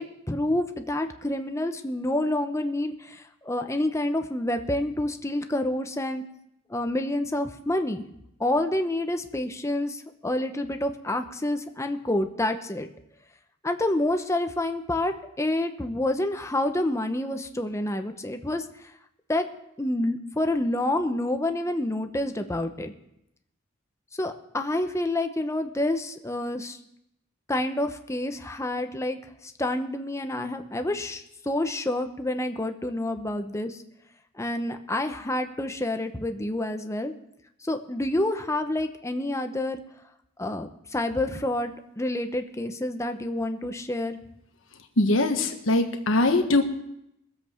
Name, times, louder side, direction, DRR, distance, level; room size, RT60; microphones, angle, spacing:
voice 1, 0.0-6.2 6.7-8.0 8.4-12.9 13.6-18.9 19.3-19.5 19.8-22.9 24.2-26.8 27.5-29.2 29.4-33.8 34.4-37.1 37.6-39.8 40.4-44.2, left 1 dB, 15° left, 6 dB, 0.8 m, -28 dB
voice 2, 45.0-46.6, left 2 dB, 70° left, 5 dB, 1.4 m, -22 dB
21.5 x 7.8 x 4.5 m, 0.81 s
head